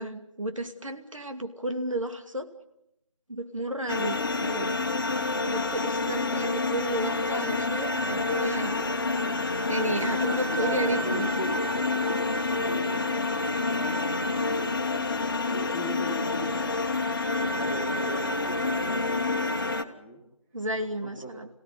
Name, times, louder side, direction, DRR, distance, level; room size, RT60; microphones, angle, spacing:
voice 1, 0.0-2.5 3.3-4.8 5.4-9.0 9.7-11.3 20.5-21.5, right 1 dB, 70° right, 7 dB, 2.6 m, -32 dB
sound 1, 3.9-19.8, left 3 dB, 40° left, 1.4 m, -28 dB
voice 2, 9.6-14.8 15.5-16.9 17.2-19.6 19.9-20.2 20.8-21.4, equal, 5° right, -1 dB, 2.1 m, -39 dB
27.5 x 17.0 x 9.6 m, 0.87 s
figure-of-eight pair, 165°, 17 cm